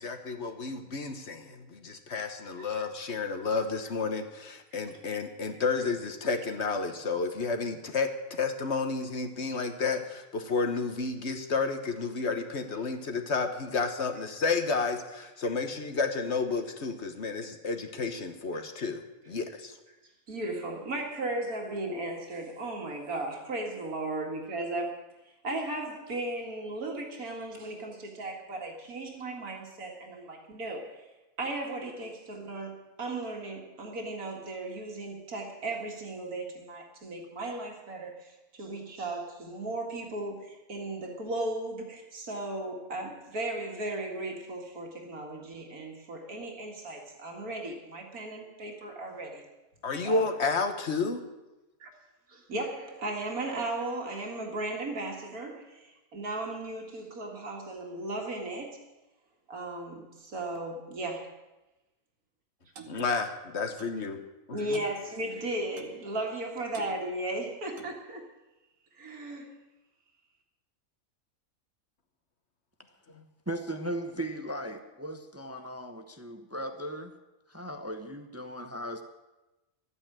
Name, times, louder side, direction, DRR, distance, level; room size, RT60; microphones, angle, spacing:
voice 1, 0.0-19.8 49.8-51.2 62.9-64.2 64.5-64.8 73.1-73.2, left 4 dB, 50° left, 7 dB, 1.5 m, -31 dB
voice 2, 20.3-25.0 25.4-31.1 31.4-49.5 50.0-50.3 51.8-51.9 52.3-58.8 59.5-61.3 64.5-68.2 69.0-69.5, right 2 dB, 85° right, 1 dB, 2.5 m, -36 dB
Clock, 62.8-63.0 63.8-64.0 64.7-65.0 65.8-66.0 66.7-66.9 67.8-68.0, right 7 dB, 65° right, 1.6 m, -47 dB
voice 3, 73.5-77.1 77.5-79.0, right 1 dB, 15° right, 6 dB, 0.7 m, -37 dB
12.5 x 9.0 x 8.9 m, 1.0 s
omnidirectional pair, 1.5 m